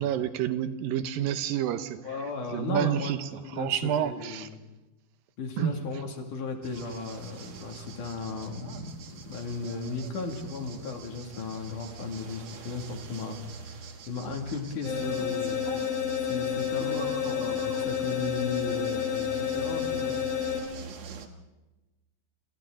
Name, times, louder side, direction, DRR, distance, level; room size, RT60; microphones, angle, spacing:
voice 1, 0.0-2.0 2.5-3.2 3.6-4.5 5.6-5.7, right 10 dB, 85° right, 10 dB, 2.7 m, -28 dB
voice 2, 2.0-3.2 3.4-4.6 5.4-13.8 14.1-15.9 16.2-20.2, left 4 dB, 65° left, 3 dB, 3.8 m, -36 dB
sound 1, 6.6-21.3, right 5 dB, 55° right, 2.5 m, -44 dB
sound 2, 14.8-20.6, left 8 dB, 85° left, 7.7 m, -30 dB
28.0 x 27.0 x 3.8 m, 1.1 s
omnidirectional pair, 4.0 m